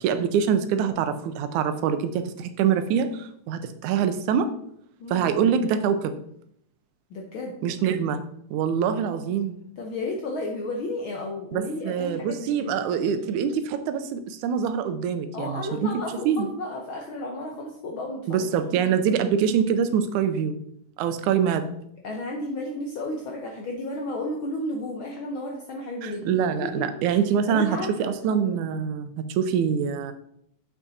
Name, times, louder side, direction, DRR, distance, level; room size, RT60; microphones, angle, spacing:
voice 1, 0.0-4.5 5.1-6.1 7.6-8.2 8.5-9.6 11.5-15.9 16.3-16.5 18.3-20.6 21.0-21.6 26.0-30.1, right 7 dB, 85° right, 10 dB, 2.1 m, -24 dB
voice 2, 7.1-7.6 9.8-12.8 15.3-18.5 22.0-26.4 27.1-27.2 27.5-28.1, left 1 dB, 70° left, 1 dB, 1.2 m, -33 dB
7.0 x 5.9 x 4.0 m, 0.71 s
omnidirectional pair, 3.3 m